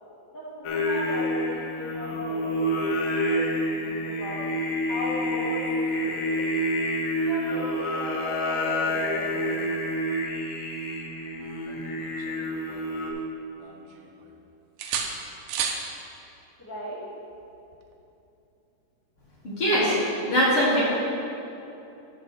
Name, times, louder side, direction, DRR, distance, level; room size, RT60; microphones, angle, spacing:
voice 1, 0.3-4.4 4.9-6.4 7.1-9.6 16.6-17.0, equal, 30° left, -8 dB, 0.4 m, -37 dB
Singing, 0.6-13.1, equal, 90° left, 2.5 m, -28 dB
sound 1, 11.7-13.2 13.6-14.4 14.8-15.9 17.7-17.9, right 6 dB, 75° right, 2.0 m, -34 dB
voice 2, 19.4-19.9 20.3-20.8, equal, 45° left, -7 dB, 2.3 m, -21 dB
12.0 x 6.0 x 3.3 m, 2.8 s
omnidirectional pair, 3.8 m